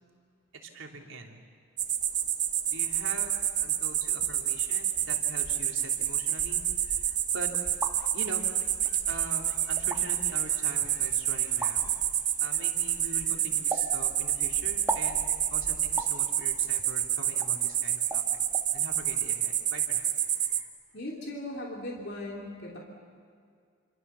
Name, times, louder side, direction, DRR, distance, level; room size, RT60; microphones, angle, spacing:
voice 1, 0.6-1.4 2.7-7.5 8.1-8.4 9.1-11.9 12.4-18.4 18.7-20.7, right 2 dB, 75° right, 1 dB, 3.2 m, -43 dB
sound 1, 1.8-20.6, right 10 dB, 40° right, 1.2 m, -29 dB
sound 2, 7.5-8.0 8.9-9.0 9.8-10.0 11.6-11.7 13.7-13.9 14.9-15.1 16.0-16.2 17.4-17.5 18.1-18.3 18.5-18.7, right 2 dB, 10° right, 1.6 m, -34 dB
voice 2, 20.9-22.8, left 1 dB, 55° left, -2 dB, 3.3 m, -38 dB
27.0 x 26.5 x 7.0 m, 2.2 s
head